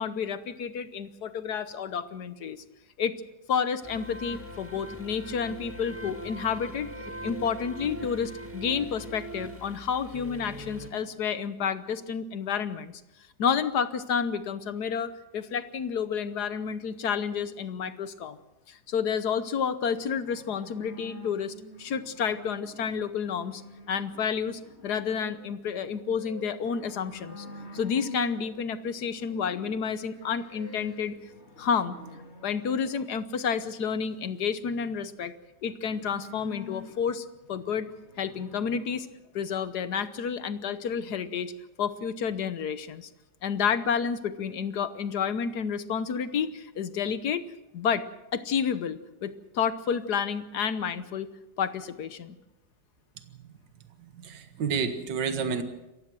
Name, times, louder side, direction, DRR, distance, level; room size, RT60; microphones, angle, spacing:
voice 1, 0.0-2.6 3.0-3.1 3.5-6.9 7.2-13.0 13.4-18.4 18.7-23.6 23.9-27.4 27.7-31.1 31.6-32.0 32.4-35.3 35.6-37.9 38.2-39.1 39.3-41.5 41.8-43.1 43.4-47.4 47.7-48.0 48.3-51.3 51.6-52.4, left 7 dB, 60° left, 13 dB, 1.4 m, -30 dB
sound 1, 3.8-10.9, equal, 5° right, 2.2 m, -41 dB
sound 2, 19.9-33.1 35.6-39.0, left 3 dB, 35° left, 3.0 m, -47 dB
voice 2, 54.1-55.6, right 6 dB, 70° right, 8 dB, 2.1 m, -29 dB
27.5 x 15.0 x 6.3 m, 0.95 s
omnidirectional pair, 2.0 m